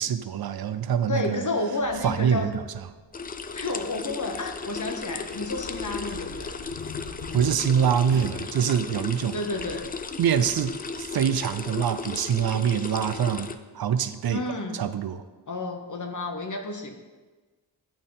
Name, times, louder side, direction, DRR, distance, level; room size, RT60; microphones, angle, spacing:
voice 1, 0.0-1.4 2.0-2.6 7.3-9.4 10.2-14.4 14.7-15.2, right 8 dB, 55° right, 12 dB, 0.5 m, -25 dB
voice 2, 1.1-2.5 3.5-6.5 9.3-9.9 14.3-14.8 15.5-17.0, left 2 dB, 40° left, 3 dB, 0.8 m, -31 dB
sound 1, 1.8-12.0, left 4 dB, 75° left, 0.8 m, -46 dB
sound 2, 3.1-13.5, left 4 dB, 20° left, 0.3 m, -36 dB
sound 3, 3.3-8.3, right 2 dB, 80° right, 1.8 m, -49 dB
8.6 x 4.1 x 3.8 m, 1.3 s
cardioid pair, 50°, 46 cm